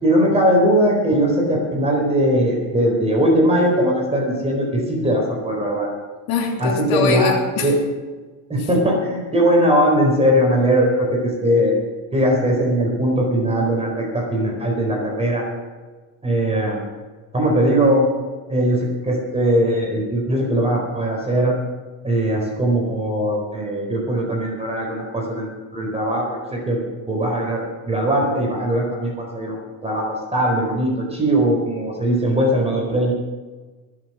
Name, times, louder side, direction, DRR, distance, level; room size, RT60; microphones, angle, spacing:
voice 1, 0.0-5.9 6.6-7.3 7.6-7.8 8.5-11.7 12.1-15.4 16.2-16.8 17.3-18.1 18.5-21.6 22.0-25.5 25.7-26.8 27.1-29.6 29.8-33.1, equal, 15° right, -1 dB, 4.4 m, -20 dB
voice 2, 6.3-7.7 8.6-8.7, left 5 dB, 75° left, 2 dB, 3.1 m, -22 dB
21.5 x 7.7 x 6.2 m, 1.4 s
supercardioid pair, 105°, 39 cm